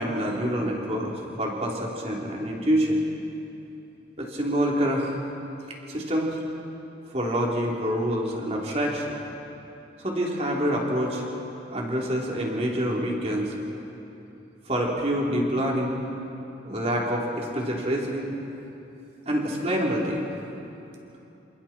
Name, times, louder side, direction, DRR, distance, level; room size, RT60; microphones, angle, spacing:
voice 1, 0.0-3.0 4.2-5.2 5.9-6.4 7.1-9.2 10.0-11.2 11.7-13.5 14.7-16.0 16.6-18.3 19.3-20.2, equal, 35° right, -2 dB, 3.6 m, -26 dB
28.5 x 27.0 x 4.5 m, 2.9 s
head